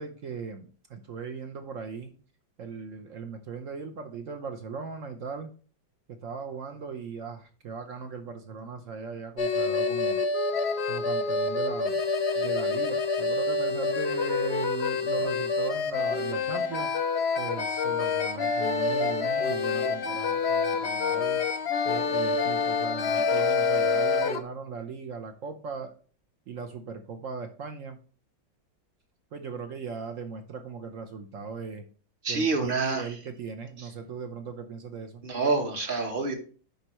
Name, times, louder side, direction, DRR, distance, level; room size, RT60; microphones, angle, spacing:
voice 1, 0.0-2.1 2.6-5.5 6.1-10.2 10.9-12.0 12.4-16.9 17.4-21.4 21.8-25.9 26.5-28.0 29.3-31.9 32.3-35.2, right 5 dB, 70° right, 7 dB, 0.7 m, -38 dB
sound 1, 9.4-24.4, left 4 dB, 55° left, 0.7 m, -27 dB
voice 2, 32.2-33.1 33.8-33.9 35.2-36.4, right 3 dB, 35° right, 4 dB, 0.9 m, -27 dB
11.0 x 4.4 x 3.0 m, 0.40 s
omnidirectional pair, 2.1 m